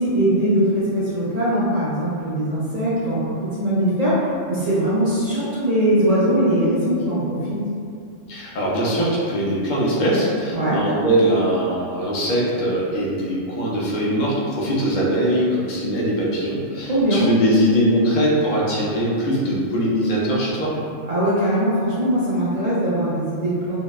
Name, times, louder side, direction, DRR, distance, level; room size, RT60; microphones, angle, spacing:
voice 1, 0.0-7.6 10.5-10.8 16.8-17.3 21.1-23.8, right 1 dB, 60° right, -10 dB, 0.4 m, -21 dB
voice 2, 8.3-20.7, equal, 70° left, -5 dB, 0.4 m, -21 dB
2.8 x 2.1 x 2.2 m, 2.4 s
omnidirectional pair, 1.3 m